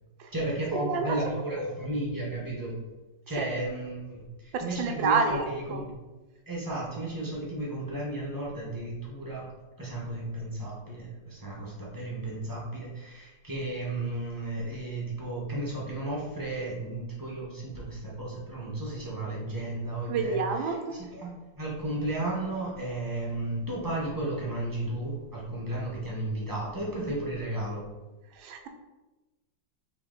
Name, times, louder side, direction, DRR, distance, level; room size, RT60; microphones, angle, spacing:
voice 1, 0.3-2.8 3.3-6.0 6.5-9.5 9.8-27.8, right 1 dB, 30° right, -5 dB, 0.4 m, -34 dB
voice 2, 0.8-1.2 3.4-3.5 4.5-5.4 5.7-5.8 20.1-20.8 28.4-28.7, right 4 dB, 85° right, 5 dB, 1.3 m, -28 dB
4.6 x 3.0 x 3.7 m, 1.1 s
omnidirectional pair, 2.0 m